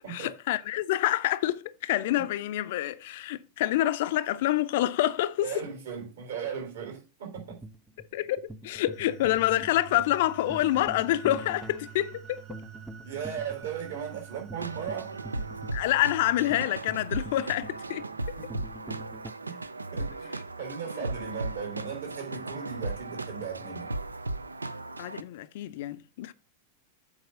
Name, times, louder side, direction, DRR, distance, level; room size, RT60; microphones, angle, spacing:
voice 1, 0.1-5.6 8.1-12.4 15.7-18.4 25.0-26.3, left 14 dB, 55° left, 0.5 m, -27 dB
voice 2, 5.4-7.6 13.0-15.1 18.4-18.5 19.4-19.6 19.9-20.3 20.6-23.9, right 7 dB, 65° right, 3.7 m, -37 dB
sound 1, 7.3-19.3, right 2 dB, 5° right, 0.6 m, -46 dB
sound 2, 8.9-16.6, right 11 dB, 35° right, 0.9 m, -48 dB
sound 3, 14.6-25.2, right 2 dB, 80° right, 0.4 m, -36 dB
7.4 x 4.7 x 6.1 m
figure-of-eight pair, 90°, 0 cm